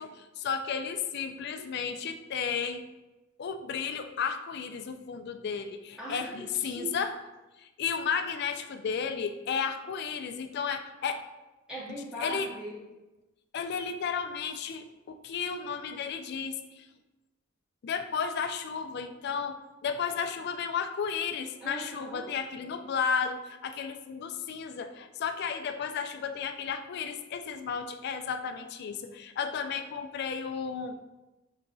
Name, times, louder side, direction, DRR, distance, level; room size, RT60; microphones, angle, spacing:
voice 1, 0.0-2.8 3.4-7.2 7.6-11.2 12.2-12.5 13.5-16.9 17.8-31.0, left 6 dB, 55° left, 8 dB, 0.3 m, -33 dB
voice 2, 6.0-6.9 11.7-12.8 21.6-22.3, right 1 dB, 5° right, -6 dB, 0.6 m, -39 dB
5.4 x 2.8 x 2.6 m, 1.0 s
head